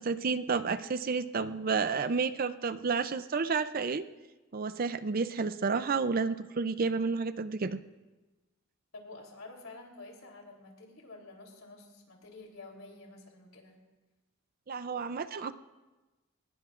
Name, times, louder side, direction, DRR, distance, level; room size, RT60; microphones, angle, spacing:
voice 1, 0.0-4.0 4.5-7.8 14.7-15.5, right 4 dB, 45° right, 12 dB, 0.5 m, -31 dB
voice 2, 8.9-13.8, left 2 dB, 75° left, 0 dB, 3.5 m, -49 dB
21.5 x 19.5 x 2.5 m, 1.2 s
head